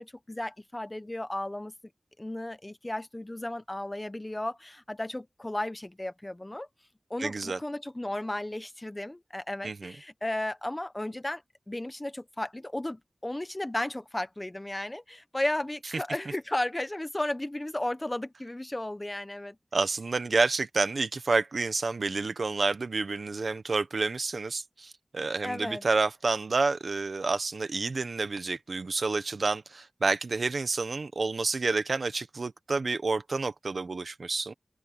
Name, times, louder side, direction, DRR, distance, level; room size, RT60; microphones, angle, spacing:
voice 1, 0.0-1.7 2.2-6.7 7.1-11.4 11.7-19.6 25.4-25.8, left 1 dB, 20° left, 1.1 m, -34 dB
voice 2, 7.2-7.6 9.6-9.9 19.7-34.5, right 3 dB, 65° right, 1.3 m, -29 dB
open air
wide cardioid pair, 85°, 0 cm